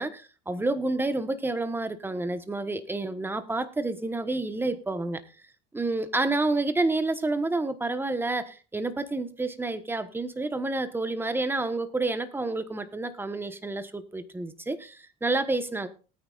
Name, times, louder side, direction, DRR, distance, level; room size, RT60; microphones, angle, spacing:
voice 1, 0.0-5.2 5.7-15.9, right 2 dB, 10° right, 1.3 m, -29 dB
19.0 x 9.3 x 2.5 m
supercardioid pair, 105°, 20 cm